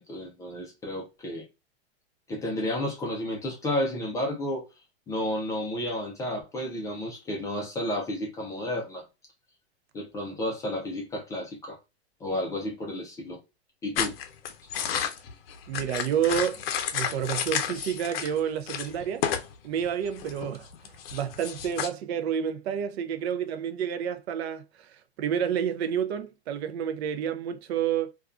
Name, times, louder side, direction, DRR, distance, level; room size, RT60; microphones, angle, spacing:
voice 1, 0.0-1.4 2.3-4.6 5.1-9.0 9.9-11.8 12.2-13.4 13.8-14.1, left 1 dB, 10° left, 0.3 m, -32 dB
sound 1, 14.0-18.4 18.7-19.5 19.8-21.9, left 8 dB, 60° left, 0.5 m, -31 dB
voice 2, 15.7-16.6 16.9-19.3 19.6-20.7 21.1-28.1, right 8 dB, 70° right, 0.5 m, -29 dB
2.3 x 2.3 x 2.3 m
hypercardioid pair, 135°, 33 cm